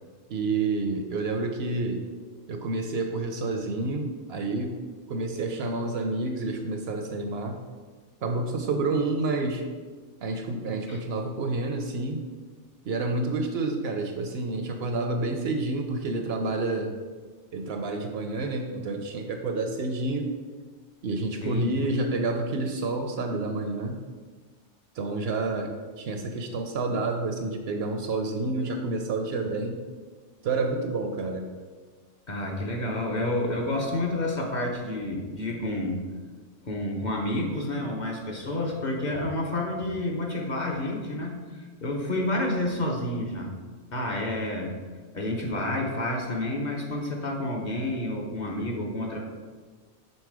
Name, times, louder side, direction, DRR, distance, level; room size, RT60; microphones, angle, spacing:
voice 1, 0.3-2.0 2.5-4.8 5.1-7.6 8.2-9.6 10.2-12.2 12.9-16.9 17.5-20.3 21.0-24.0 25.0-29.8 30.4-31.5, right 3 dB, 65° right, 5 dB, 0.8 m, -29 dB
voice 2, 32.3-36.0 36.6-43.5 43.9-44.8 45.1-49.3, left 1 dB, 45° left, -1 dB, 0.8 m, -29 dB
5.5 x 4.0 x 4.7 m, 1.5 s
omnidirectional pair, 1.2 m